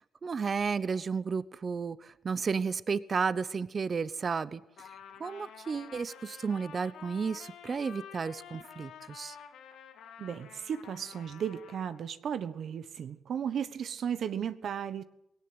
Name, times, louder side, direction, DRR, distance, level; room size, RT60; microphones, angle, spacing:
voice 1, 0.2-4.6 5.2-9.4, right 5 dB, 40° right, 17 dB, 0.9 m, -32 dB
Trumpet, 4.8-12.0, left 8 dB, 80° left, 2.7 m, -50 dB
voice 2, 10.2-15.0, right 8 dB, 60° right, 13 dB, 1.2 m, -35 dB
18.5 x 17.5 x 8.0 m, 0.78 s
cardioid pair, 90°, 0 cm